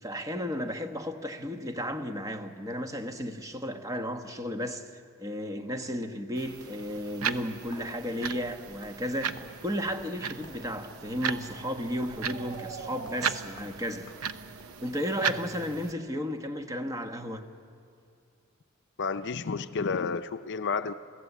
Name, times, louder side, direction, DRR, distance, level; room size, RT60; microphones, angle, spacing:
voice 1, 0.0-14.1 14.8-17.4, equal, 15° right, 1.3 m, -34 dB
sound 1, 6.3-15.9, right 7 dB, 80° right, 0.8 m, -37 dB
sound 2, 7.3-14.6, left 1 dB, 20° left, 3.0 m, -54 dB
sound 3, 9.6-15.4, right 5 dB, 40° right, 0.7 m, -47 dB
voice 2, 19.0-20.9, left 5 dB, 55° left, 0.6 m, -31 dB
27.5 x 16.0 x 8.4 m
head